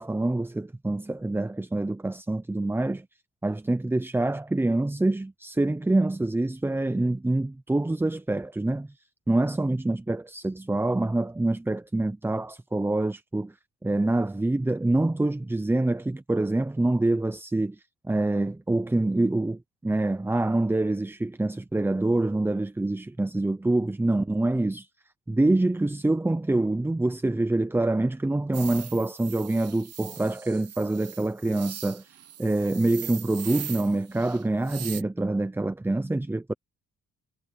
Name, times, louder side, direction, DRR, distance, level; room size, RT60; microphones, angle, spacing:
voice 1, 0.0-3.1 3.4-8.9 9.3-13.5 13.8-24.9 25.3-36.5, right 2 dB, 5° right, 0.6 m, -26 dB
sound 1, 28.5-35.0, right 10 dB, 55° right, 1.1 m, -41 dB
cardioid pair, 90°, 30 cm